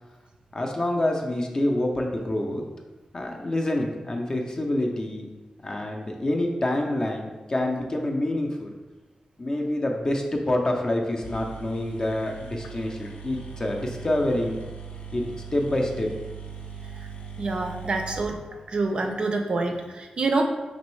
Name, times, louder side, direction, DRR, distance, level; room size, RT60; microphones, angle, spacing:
voice 1, 0.5-2.6 3.1-5.3 5.6-8.7 9.4-14.6 15.1-15.2 15.5-16.1, left 1 dB, 30° left, 1 dB, 0.5 m, -27 dB
sound 1, 10.9-11.0 11.2-19.0, right 5 dB, 85° left, 0.5 m, -40 dB
voice 2, 17.4-18.4 18.7-20.4, right 3 dB, 45° right, 3 dB, 0.4 m, -26 dB
5.2 x 3.0 x 3.1 m, 1.2 s
wide cardioid pair, 170°, 2 cm